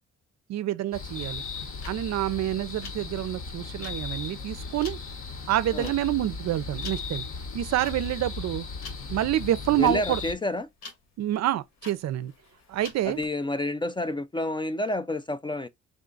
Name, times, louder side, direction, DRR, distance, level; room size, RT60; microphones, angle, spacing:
voice 1, 0.5-1.4 1.9-5.0 5.5-7.2 7.5-8.7 9.1-10.2 11.2-12.3 12.7-13.2, right 13 dB, 60° right, 0.5 m, -27 dB
sound 1, 0.9-10.3, left 4 dB, 45° left, 0.9 m, -37 dB
sound 2, 1.5-13.3, left 4 dB, 60° left, 1.3 m, -48 dB
voice 2, 9.8-10.7 13.0-15.7, left 1 dB, 15° left, 0.3 m, -29 dB
3.7 x 2.4 x 3.8 m
cardioid pair, 90°, 30 cm